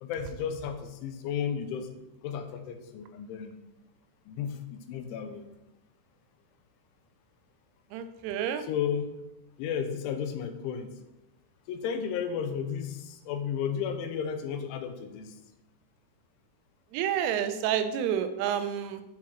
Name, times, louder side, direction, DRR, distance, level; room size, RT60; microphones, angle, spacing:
voice 1, 0.0-1.9 2.2-3.6 4.3-5.5 8.6-9.1 9.6-10.9 11.7-15.3, left 7 dB, 85° left, 7 dB, 3.1 m, -33 dB
voice 2, 7.9-8.6 16.9-19.0, right 9 dB, 90° right, 9 dB, 3.2 m, -29 dB
9.7 x 4.2 x 4.3 m, 0.97 s
omnidirectional pair, 5.5 m